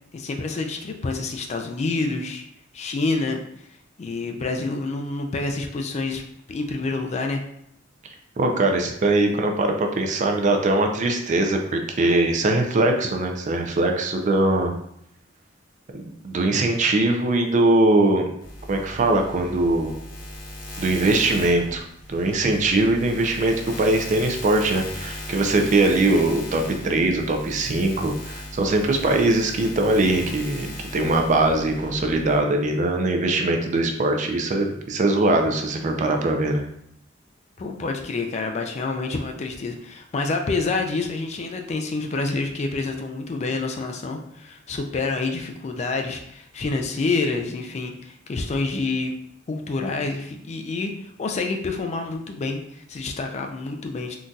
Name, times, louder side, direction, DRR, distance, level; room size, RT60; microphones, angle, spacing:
voice 1, 0.1-2.4 2.7-3.4 4.0-6.2 6.5-7.4 37.6-49.1 49.5-50.9 51.2-54.2, left 3 dB, 35° left, 4 dB, 0.3 m, -27 dB
voice 2, 8.4-14.7 15.9-18.3 18.7-19.9 20.8-21.8 22.1-28.1 28.5-36.6, right 2 dB, 40° right, 3 dB, 0.4 m, -21 dB
sound 1, 18.4-32.4, left 1 dB, 70° left, 0.8 m, -37 dB
3.8 x 2.6 x 2.3 m, 0.72 s
head